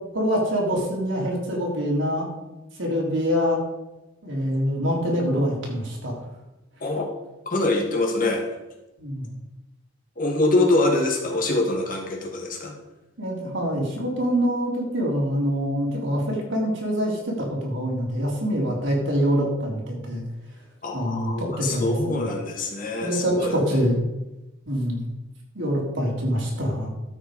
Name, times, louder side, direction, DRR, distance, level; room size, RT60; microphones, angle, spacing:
voice 1, 0.1-2.3 2.8-3.6 4.2-6.2 9.0-9.3 13.2-20.2 20.9-22.3 23.0-24.0 24.7-25.1 25.5-26.9, equal, 65° right, -2 dB, 3.8 m, -25 dB
voice 2, 7.5-8.5 10.2-12.8 20.8-23.5, left 2 dB, 40° left, 1 dB, 2.3 m, -24 dB
13.0 x 8.3 x 5.0 m, 1.0 s
head